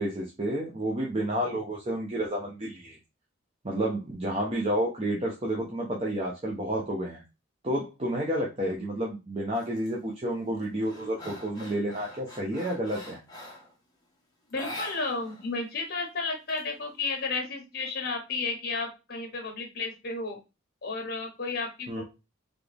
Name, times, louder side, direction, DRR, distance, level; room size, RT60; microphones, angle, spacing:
voice 1, 0.0-3.0 3.6-7.2 7.6-13.2 21.9-22.0, right 1 dB, 30° right, -3 dB, 0.9 m, -30 dB
sound 1, 9.5-9.9 10.3-13.7 14.5-15.5 15.7-15.8 16.2-17.1, left 1 dB, 20° left, 1.3 m, -43 dB
voice 2, 14.5-20.4 20.8-22.0, left 3 dB, 50° left, 3 dB, 1.4 m, -32 dB
4.0 x 3.6 x 3.5 m, 0.27 s
head